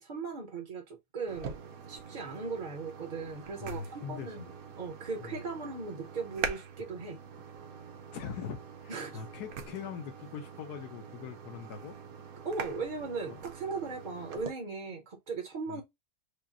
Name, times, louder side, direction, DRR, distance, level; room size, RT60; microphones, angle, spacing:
voice 1, 0.0-7.2 8.9-9.2 12.4-15.8, right 4 dB, 40° right, 0.6 m, -38 dB
sound 1, 1.3-14.5, right 6 dB, 65° right, 1.2 m, -44 dB
voice 2, 3.6-4.3 5.2-5.4 8.1-12.0 13.3-13.4 15.7-15.8, left 7 dB, 80° left, 1.2 m, -42 dB
4.9 x 2.0 x 2.8 m
omnidirectional pair, 1.7 m